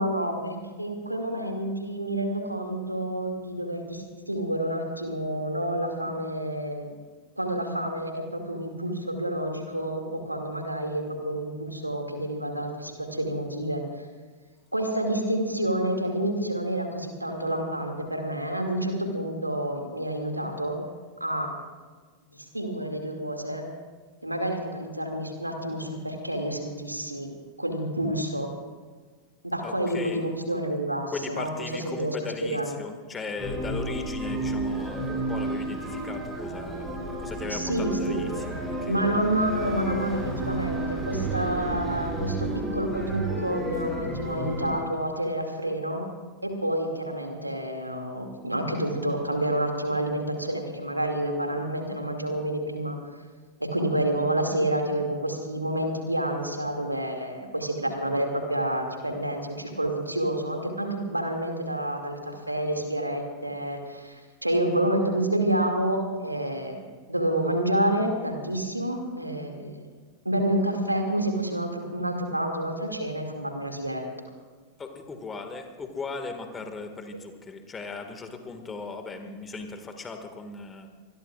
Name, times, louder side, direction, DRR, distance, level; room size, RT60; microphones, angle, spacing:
voice 1, 0.0-6.9 7.4-13.8 14.7-20.8 21.2-21.5 22.5-23.6 24.2-27.3 27.6-28.5 29.4-32.7 37.5-38.3 38.9-46.0 46.4-53.0 53.6-69.8 70.2-74.0, right 1 dB, 85° right, 3 dB, 2.3 m, -29 dB
voice 2, 29.6-30.2 31.1-39.0 74.8-80.9, left 4 dB, 20° left, 6 dB, 1.9 m, -38 dB
sound 1, 33.4-44.8, right 2 dB, 10° right, 6.3 m, -31 dB
26.0 x 20.5 x 2.5 m, 1.4 s
figure-of-eight pair, 90°, 0 cm